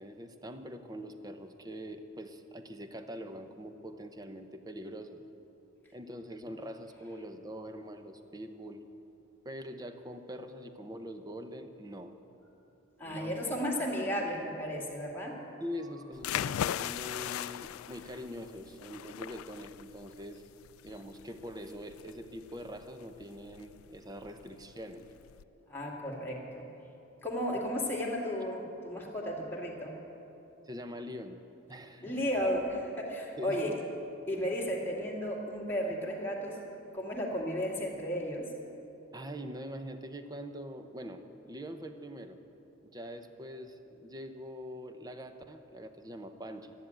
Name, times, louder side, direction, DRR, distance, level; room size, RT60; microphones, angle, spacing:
voice 1, 0.0-5.2 5.9-8.8 9.4-12.1 13.0-13.7 15.6-20.4 20.8-25.0 30.6-31.4 31.7-32.1 33.4-33.8 39.1-42.4 42.8-46.7, equal, 20° right, 7 dB, 0.7 m, -43 dB
voice 2, 13.0-15.4 25.7-26.7 27.2-30.0 32.0-33.7 34.3-36.6 36.9-38.5, equal, 10° left, -3 dB, 2.1 m, -34 dB
sound 1, 16.1-25.4, left 10 dB, 90° left, 0.3 m, -39 dB
12.5 x 10.0 x 8.8 m, 3.0 s
head